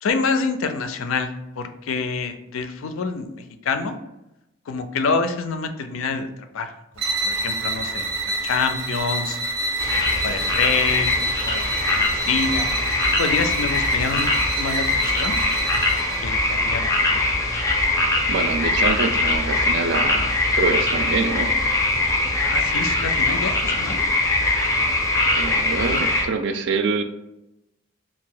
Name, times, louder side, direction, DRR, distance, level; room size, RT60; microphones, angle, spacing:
voice 1, 0.0-4.0 4.7-6.3 6.5-9.4 9.9-14.3 14.6-15.4 16.2-17.2 22.4-24.1, left 5 dB, 90° left, 8 dB, 0.4 m, -27 dB
sound 1, 6.9-16.3, right 2 dB, 85° right, 0.7 m, -27 dB
sound 2, 9.8-26.2, left 2 dB, 15° left, 0.4 m, -22 dB
voice 2, 18.3-21.5 25.4-27.0, right 4 dB, 60° right, 8 dB, 0.4 m, -25 dB
2.8 x 2.5 x 3.8 m, 0.91 s
head